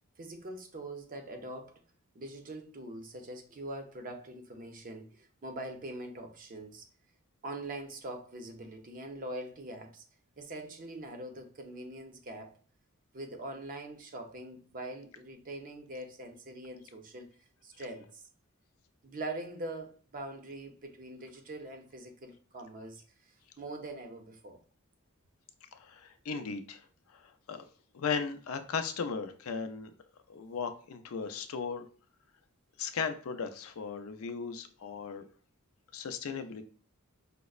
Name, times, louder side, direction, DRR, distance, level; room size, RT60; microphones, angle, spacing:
voice 1, 0.2-1.7 2.1-6.8 7.4-10.0 10.4-12.6 13.1-17.3 17.6-18.2 19.0-23.0 23.6-24.6, right 1 dB, 40° right, 0.6 m, -43 dB
voice 2, 25.7-27.6 27.9-29.9 30.3-31.9 32.8-35.2 35.9-36.6, left 5 dB, 70° left, 0.4 m, -37 dB
5.1 x 2.0 x 2.3 m
head